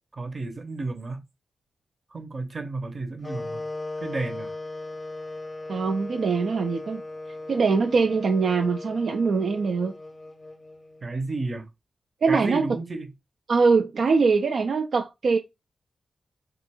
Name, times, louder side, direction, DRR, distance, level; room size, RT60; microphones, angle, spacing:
voice 1, 0.1-1.2 2.1-3.6 4.0-4.5 11.0-11.7 12.3-13.1, right 3 dB, 45° right, 0.7 m, -32 dB
sound 1, 3.2-11.2, left 2 dB, 30° left, 0.5 m, -38 dB
voice 2, 5.7-7.0 7.5-9.9 12.2-12.7 13.5-15.4, right 4 dB, 70° right, 0.3 m, -22 dB
2.4 x 2.3 x 2.9 m
cardioid pair, 50°, 0 cm